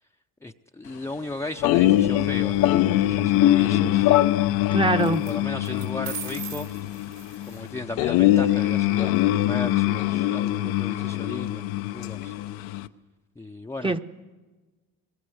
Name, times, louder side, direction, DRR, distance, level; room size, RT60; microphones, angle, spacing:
voice 1, 0.4-4.1 5.0-6.7 7.5-11.6 11.9-12.4 13.4-13.9, left 2 dB, 10° left, 3 dB, 0.7 m, -36 dB
sound 1, 1.6-12.9, left 14 dB, 85° left, 0.8 m, -24 dB
sound 2, 1.6-5.1, left 13 dB, 55° left, 0.8 m, -24 dB
sound 3, 2.1-2.7 5.0-5.3 5.6-7.7, right 7 dB, 75° right, 6.0 m, -39 dB
voice 2, 4.7-5.2 13.8-14.0, right 2 dB, 15° right, 8 dB, 1.0 m, -23 dB
24.0 x 20.5 x 7.9 m, 1.3 s
supercardioid pair, 90°, 35 cm